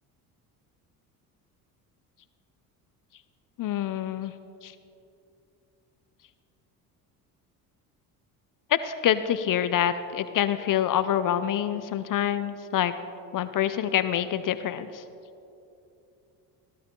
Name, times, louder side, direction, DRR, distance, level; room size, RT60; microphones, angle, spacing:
voice 1, 3.6-4.3 4.6-4.7 8.7-12.9 13.3-15.0, left 10 dB, 45° left, 12 dB, 0.6 m, -26 dB
17.0 x 11.5 x 3.8 m, 2.7 s
hypercardioid pair, 65°, 46 cm